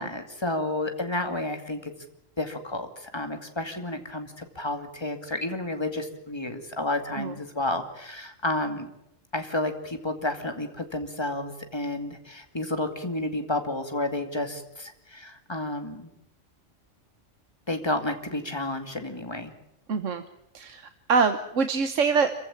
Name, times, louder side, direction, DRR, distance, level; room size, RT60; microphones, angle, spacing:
voice 1, 0.0-1.9 2.4-8.9 9.3-16.1 17.7-19.5, left 2 dB, 20° left, 6 dB, 2.4 m, -31 dB
voice 2, 19.9-20.2 20.5-22.3, right 5 dB, 70° right, 9 dB, 1.4 m, -25 dB
26.0 x 16.0 x 8.7 m, 0.82 s
omnidirectional pair, 1.3 m